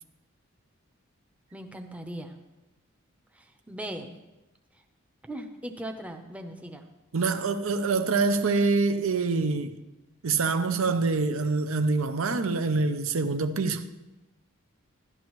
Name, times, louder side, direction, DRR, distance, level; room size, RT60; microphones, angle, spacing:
voice 1, 1.5-2.4 3.3-4.2 5.3-6.8, right 1 dB, 5° right, 0.7 m, -39 dB
voice 2, 7.1-9.8 10.2-13.9, right 4 dB, 75° right, 0.7 m, -25 dB
12.0 x 11.5 x 3.1 m
head